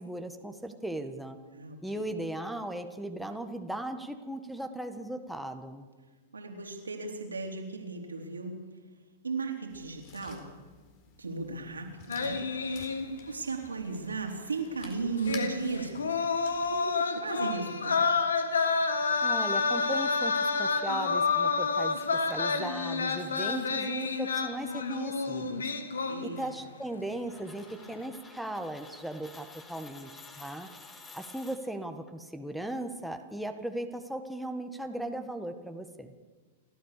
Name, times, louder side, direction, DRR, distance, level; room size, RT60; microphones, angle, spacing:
voice 1, 0.0-1.4 1.8-5.9 19.2-22.0 22.3-25.7 26.2-30.1 30.4-30.7 31.1-36.1, right 1 dB, ahead, 5 dB, 1.7 m, -37 dB
voice 2, 1.5-2.0 6.3-8.6 9.2-10.5 11.2-12.8 13.3-16.2 16.7-18.1 26.1-26.4, right 4 dB, 85° right, 2 dB, 3.7 m, -36 dB
sound 1, 9.7-16.8, left 6 dB, 45° left, 4.2 m, -52 dB
sound 2, 12.1-13.5 13.8-13.9 15.2-26.6 26.9-27.3, left 4 dB, 75° left, 1.8 m, -29 dB
sound 3, 27.3-32.1, left 3 dB, 15° left, 3.0 m, -51 dB
30.0 x 13.5 x 6.9 m, 1.4 s
figure-of-eight pair, 100°, 0 cm